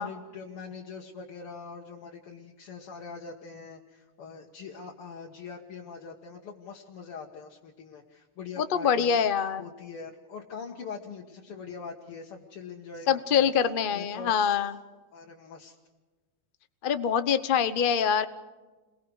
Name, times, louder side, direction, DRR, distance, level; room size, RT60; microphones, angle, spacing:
voice 1, 0.0-9.3 9.6-13.5 13.9-14.6 15.1-15.8, left 5 dB, 85° left, -2 dB, 2.5 m, -43 dB
voice 2, 8.6-9.6 13.1-14.7 16.8-18.2, left 7 dB, 60° left, 11 dB, 0.5 m, -25 dB
29.5 x 22.0 x 4.9 m, 1.3 s
omnidirectional pair, 2.4 m